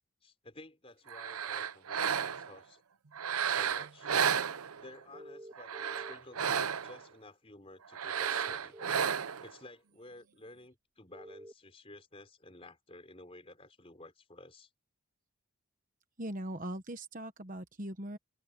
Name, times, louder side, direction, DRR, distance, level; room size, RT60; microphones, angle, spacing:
voice 1, 0.0-2.8 3.5-4.1 4.8-8.8 9.4-14.7, left 2 dB, 25° left, 4.3 m, -53 dB
sound 1, 1.1-2.6 3.1-5.0 5.5-7.0 7.9-9.5, right 7 dB, 80° right, 0.8 m, -33 dB
sound 2, 5.1-6.1 8.1-9.1 11.1-11.5, right 1 dB, 20° right, 2.6 m, -49 dB
voice 2, 16.2-18.2, right 1 dB, 35° right, 1.3 m, -40 dB
open air
head